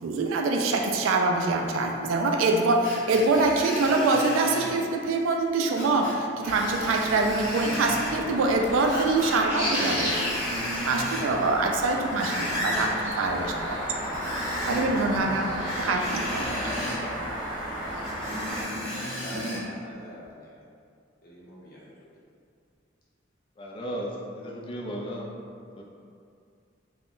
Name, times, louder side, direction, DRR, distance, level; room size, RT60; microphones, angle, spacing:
voice 1, 0.0-10.4 10.8-13.8 14.7-16.7, right 3 dB, 85° right, 2 dB, 0.3 m, -25 dB
Screech, 2.8-4.7 5.7-6.2 6.5-8.1 8.8-9.4 9.6-11.3 11.8-12.9 14.0-15.0 15.6-17.0 18.0-19.6 20.2-20.3, equal, 45° right, 1.4 m, -34 dB
sound 1, 6.4-18.6, equal, 15° right, 0.8 m, -33 dB
voice 2, 17.8-20.6 21.2-22.1, left 1 dB, 50° left, -7 dB, 0.7 m, -44 dB
voice 3, 23.6-25.3 25.8-25.9, equal, 25° left, -2 dB, 0.3 m, -35 dB
3.5 x 2.1 x 2.4 m, 2.4 s
head